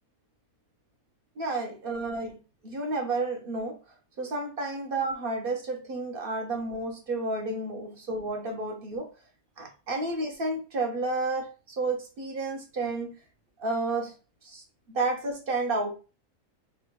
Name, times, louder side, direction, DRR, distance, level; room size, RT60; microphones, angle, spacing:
voice 1, 1.4-2.4 2.6-3.8 4.2-9.1 9.6-13.1 13.6-14.1 14.4-15.9, right 2 dB, 45° right, 1.1 m, -31 dB
3.6 x 2.4 x 4.5 m
omnidirectional pair, 1.4 m